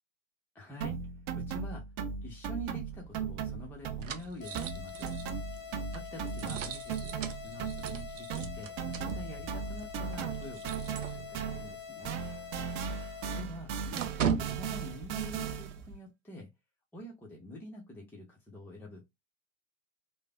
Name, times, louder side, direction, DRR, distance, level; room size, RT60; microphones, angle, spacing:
voice 1, 0.5-1.0 1.3-1.8 2.2-5.2 5.9-12.2 13.3-16.5 16.9-19.1, equal, 5° left, 0.7 m, -46 dB
sound 1, 0.8-4.3 4.5-11.8 12.0-15.8, right 7 dB, 35° right, 0.5 m, -37 dB
sound 2, 2.9-11.7 12.0-12.1 12.5-16.0, right 6 dB, 80° right, 0.6 m, -40 dB
sound 3, 4.4-13.4, left 7 dB, 30° left, 0.9 m, -45 dB
3.2 x 2.1 x 2.3 m
figure-of-eight pair, 85°, 38 cm